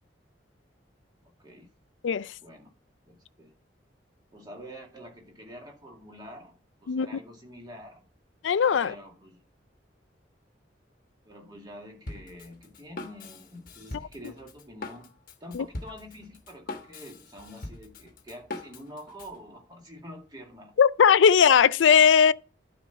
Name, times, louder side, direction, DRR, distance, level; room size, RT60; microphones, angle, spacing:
voice 1, 2.4-2.7 3.1-3.5 4.3-8.0 8.7-9.4 11.3-15.1 15.4-20.7, equal, 25° right, 2.2 m, -46 dB
voice 2, 8.4-8.9 15.5-15.6 20.8-22.3, left 7 dB, 85° left, 0.4 m, -19 dB
Drum kit, 12.1-19.4, left 2 dB, 50° left, 1.1 m, -42 dB
12.0 x 4.2 x 5.7 m
head